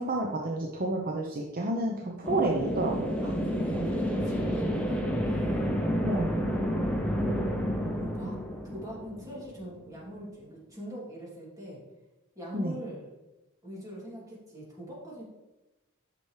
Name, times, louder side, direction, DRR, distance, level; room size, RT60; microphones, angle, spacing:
voice 1, 0.0-3.1 4.5-4.6 6.0-6.4 12.5-12.7, right 2 dB, 40° right, 0 dB, 0.7 m, -30 dB
sound 1, 2.2-9.8, equal, 5° left, 0.9 m, -30 dB
voice 2, 3.2-5.9 7.9-8.4 8.6-11.8 12.3-13.1 13.6-15.2, equal, 15° right, -5 dB, 2.7 m, -42 dB
9.6 x 6.0 x 3.2 m, 1.0 s
head